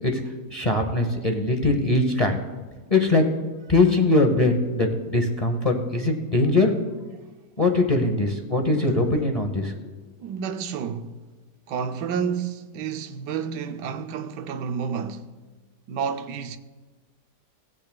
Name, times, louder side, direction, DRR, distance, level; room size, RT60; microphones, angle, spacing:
voice 1, 0.5-2.4 2.9-3.2 3.7-6.7 7.6-9.7, left 2 dB, 30° left, 0.7 m, -21 dB
voice 2, 8.8-9.2 10.2-11.2 11.7-15.3 15.9-16.6, right 6 dB, 85° right, 1.3 m, -30 dB
19.0 x 8.2 x 2.3 m
omnidirectional pair, 1.8 m